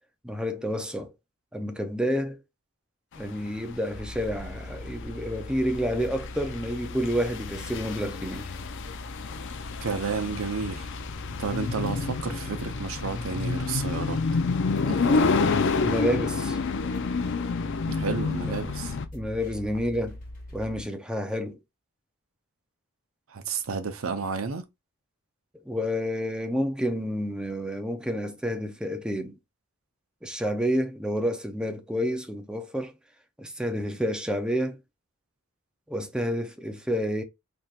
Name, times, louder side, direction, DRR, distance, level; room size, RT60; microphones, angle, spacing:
voice 1, 0.2-1.1 1.5-2.4 3.2-8.5 15.8-16.6 19.1-20.2 20.5-21.6 25.7-29.4 30.2-32.9 33.4-34.8 35.9-37.2, equal, 5° right, 0.6 m, -29 dB
sound 1, 3.2-19.1, left 4 dB, 60° left, 0.5 m, -29 dB
sound 2, 3.9-20.8, left 1 dB, 40° left, 1.8 m, -41 dB
voice 2, 9.8-10.9 11.4-14.2 14.8-15.5 17.9-19.0 23.3-24.7, right 5 dB, 80° right, 0.7 m, -31 dB
4.3 x 3.3 x 2.4 m
head